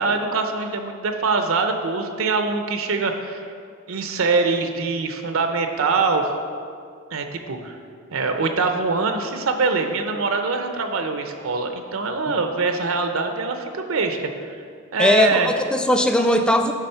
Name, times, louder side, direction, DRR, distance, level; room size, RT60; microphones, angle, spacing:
voice 1, 0.0-3.4 3.9-6.3 7.1-7.8 8.1-14.2 14.9-15.5, right 4 dB, 80° right, 6 dB, 0.6 m, -23 dB
voice 2, 15.0-16.7, left 1 dB, 5° left, 5 dB, 0.4 m, -19 dB
9.8 x 3.5 x 5.6 m, 2.2 s
head